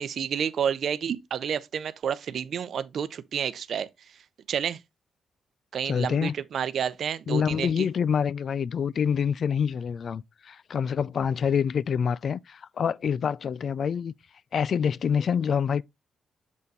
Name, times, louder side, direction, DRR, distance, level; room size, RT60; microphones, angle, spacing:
voice 1, 0.0-3.9 4.5-4.8 5.7-7.9, right 8 dB, 70° right, 0.6 m, -30 dB
voice 2, 5.8-6.3 7.3-14.1 14.5-15.8, left 7 dB, 60° left, 0.3 m, -26 dB
7.2 x 4.1 x 3.9 m
supercardioid pair, 55°, 0 cm